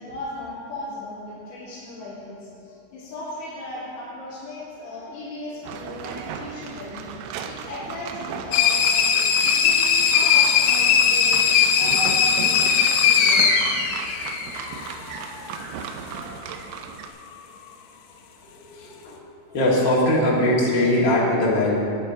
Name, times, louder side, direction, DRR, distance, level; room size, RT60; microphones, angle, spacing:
voice 1, 0.0-8.8 9.4-13.7, left 1 dB, 60° left, -14 dB, 4.9 m, -36 dB
sound 1, 5.6-17.1, right 7 dB, 80° right, 2.4 m, -35 dB
sound 2, 8.5-14.9, left 7 dB, 75° left, 2.1 m, -19 dB
voice 2, 18.8-19.1 19.5-21.7, left 1 dB, 40° left, -5 dB, 1.6 m, -20 dB
13.5 x 9.5 x 4.8 m, 2.7 s
omnidirectional pair, 5.2 m